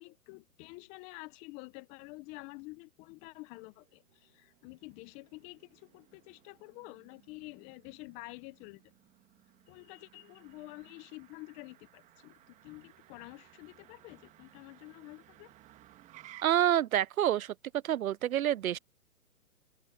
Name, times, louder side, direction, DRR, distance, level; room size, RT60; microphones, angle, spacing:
voice 1, 0.0-8.8 9.7-15.5, left 24 dB, 15° left, 0.7 m, -49 dB
Motor vehicle (road), 3.4-16.4, right 14 dB, 15° right, 1.7 m, -60 dB
voice 2, 16.4-17.5 17.8-18.8, right 11 dB, 85° right, 0.5 m, -27 dB
hypercardioid pair, 140°, 42 cm